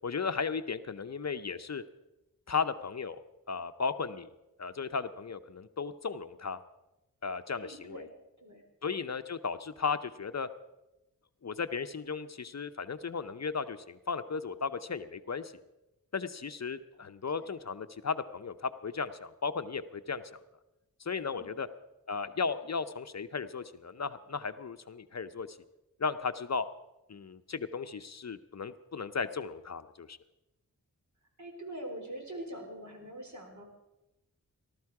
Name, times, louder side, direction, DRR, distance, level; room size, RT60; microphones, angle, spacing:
voice 1, 0.0-1.8 2.5-3.2 3.5-4.3 4.6-6.6 7.2-8.1 8.8-10.5 11.4-15.5 16.1-20.4 21.0-21.7 22.1-25.6 26.0-26.6 27.1-30.2, left 5 dB, 50° left, 11 dB, 0.7 m, -35 dB
voice 2, 7.6-8.1 8.4-8.6 17.3-17.5 21.2-21.5 31.4-33.6, right 1 dB, 55° right, 1 dB, 4.0 m, -43 dB
19.0 x 12.5 x 4.8 m, 0.98 s
wide cardioid pair, 65°, 35 cm